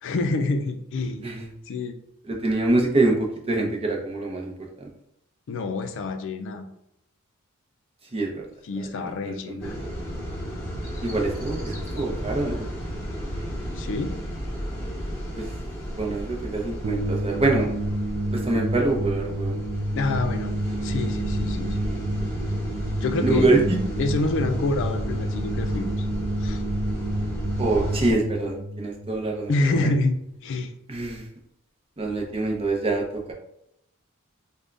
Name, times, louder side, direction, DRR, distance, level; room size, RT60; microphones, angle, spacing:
voice 1, 0.0-1.2 1.7-2.0 5.5-6.7 8.6-9.8 13.7-14.1 19.9-21.9 23.0-23.5 24.0-26.1 26.4-26.6 29.5-30.2 30.4-30.7, left 2 dB, 60° left, 7 dB, 0.4 m, -27 dB
voice 2, 2.2-4.9 8.1-8.5 9.0-9.7 11.0-12.7 15.3-15.5 16.0-17.7 18.3-19.5 23.2-23.8 27.6-29.9 30.9-31.2 32.0-33.3, right 2 dB, 25° right, 0 dB, 0.7 m, -25 dB
sound 1, 9.6-28.1, equal, 10° left, 1.1 m, -33 dB
sound 2, 16.8-30.0, right 1 dB, 70° right, 0.4 m, -29 dB
3.5 x 2.2 x 3.8 m, 0.78 s
head